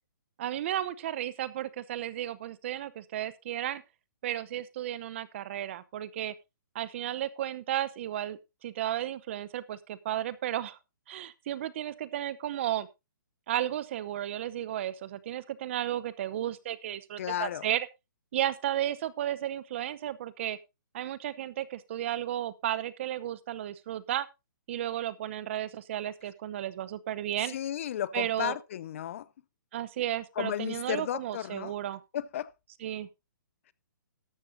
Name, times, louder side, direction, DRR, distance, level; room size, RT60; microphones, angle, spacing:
voice 1, 0.4-3.8 4.2-6.3 6.7-10.8 11.1-12.9 13.5-17.9 18.3-20.6 20.9-24.3 24.7-27.6 28.1-28.6 29.7-32.0 32.8-33.1, right 12 dB, 35° right, 0.8 m, -33 dB
voice 2, 17.2-17.7 27.4-29.3 30.4-31.7 32.1-32.5, left 11 dB, 40° left, 0.5 m, -33 dB
13.0 x 12.5 x 2.7 m
hypercardioid pair, 160°, 11 cm